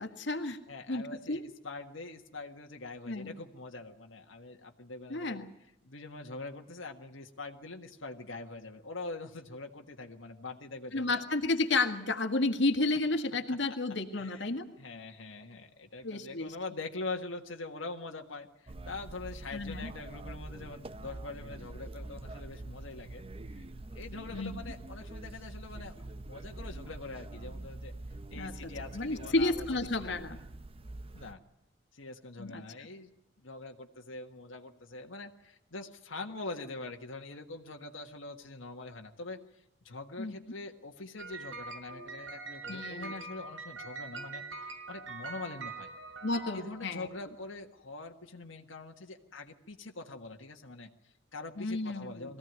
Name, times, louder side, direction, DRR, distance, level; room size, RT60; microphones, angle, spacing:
voice 1, 0.0-0.6 0.9-1.0 1.3-1.4 3.1-3.3 5.1-5.5 10.9-14.6 16.0-16.5 19.5-19.9 24.3-24.6 28.3-28.5 28.9-30.4 32.4-32.6 40.2-40.3 42.7-43.1 46.2-47.1 51.6-52.3, left 2 dB, 65° left, 6 dB, 1.9 m, -31 dB
voice 2, 0.7-5.5 5.8-11.2 13.5-13.8 14.1-23.2 23.5-23.6 23.9-27.9 28.3-29.6 31.1-31.4 31.9-33.1 33.4-45.9 46.5-52.4, left 3 dB, 90° left, 3 dB, 1.7 m, -44 dB
sound 1, 18.7-31.3, right 2 dB, 30° right, 0.7 m, -45 dB
sound 2, 41.2-47.2, right 3 dB, 85° right, 5.2 m, -44 dB
22.5 x 16.0 x 9.4 m, 0.86 s
head